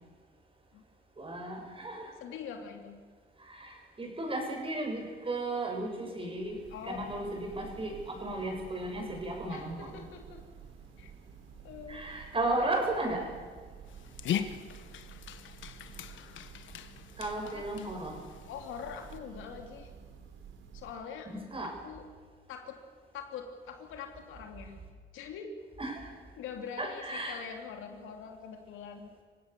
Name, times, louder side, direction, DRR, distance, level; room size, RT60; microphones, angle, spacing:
voice 1, 1.2-2.1 3.5-6.6 6.8-9.9 11.9-13.2 17.2-18.2 21.3-21.7 25.8-26.1 26.8-27.4, right 2 dB, 25° right, 2 dB, 6.3 m, -35 dB
voice 2, 2.2-3.0 6.7-7.0 9.5-10.4 11.0-11.1 11.6-12.2 12.4-12.8 13.2-13.3 17.4-17.7 18.5-19.9 20.7-21.3 21.6-22.1 22.5-22.8 23.1-24.8 25.1-25.5 26.4-29.1, left 7 dB, 90° left, 4 dB, 3.0 m, -44 dB
Church bell, 6.3-21.2, right 7 dB, 75° right, 3.8 m, -51 dB
Dog, 13.9-19.2, left 9 dB, 75° left, 1.4 m, -40 dB
26.5 x 16.5 x 6.9 m, 1.5 s
cardioid pair, 90°, 20 cm